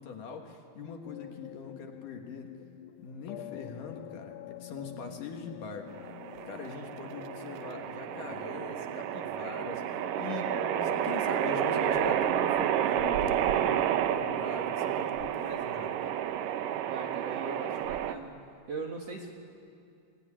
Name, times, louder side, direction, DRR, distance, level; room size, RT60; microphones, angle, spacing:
voice 1, 0.0-2.5 3.0-5.9 6.5-16.2, left 6 dB, 60° left, 3 dB, 2.8 m, -42 dB
sound 1, 1.1-12.1, left 14 dB, 85° left, 2.9 m, -45 dB
sound 2, 6.0-18.1, right 10 dB, 75° right, 2.0 m, -30 dB
voice 2, 16.9-18.4 18.7-19.3, right 3 dB, 55° right, 1 dB, 2.0 m, -39 dB
25.0 x 19.5 x 10.0 m, 2.5 s
omnidirectional pair, 4.7 m